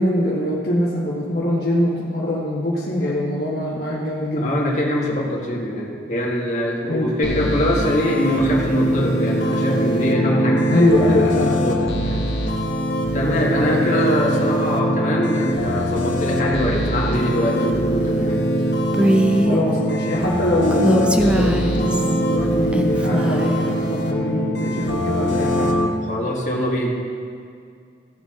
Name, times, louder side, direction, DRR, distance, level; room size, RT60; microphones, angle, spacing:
voice 1, 0.0-4.5 6.9-7.1 10.7-11.9 19.5-25.7, left 1 dB, 60° left, -6 dB, 1.3 m, -22 dB
voice 2, 4.4-12.2 13.1-18.4 26.1-27.0, equal, 40° left, -4 dB, 1.7 m, -23 dB
sound 1, 7.2-25.9, equal, 85° left, 1.1 m, -22 dB
Female speech woman speaking, 18.9-19.6 20.7-22.2 22.7-23.6, right 1 dB, 5° right, 0.4 m, -20 dB
15.0 x 7.0 x 3.7 m, 2.2 s
head